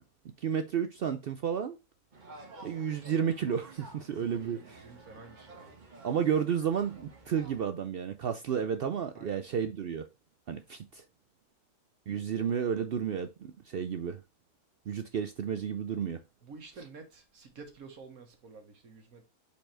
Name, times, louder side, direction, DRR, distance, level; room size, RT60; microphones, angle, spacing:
voice 1, 0.4-1.8 2.6-4.8 6.0-10.1 10.5-11.0 12.1-14.2 14.9-16.2, right 8 dB, 80° right, 0.5 m, -32 dB
sound 1, 2.1-7.6, right 2 dB, 30° right, 1.2 m, -52 dB
voice 2, 4.1-5.7 9.2-9.4 16.4-19.2, right 4 dB, 65° right, 1.9 m, -50 dB
5.3 x 4.4 x 4.3 m
omnidirectional pair, 1.6 m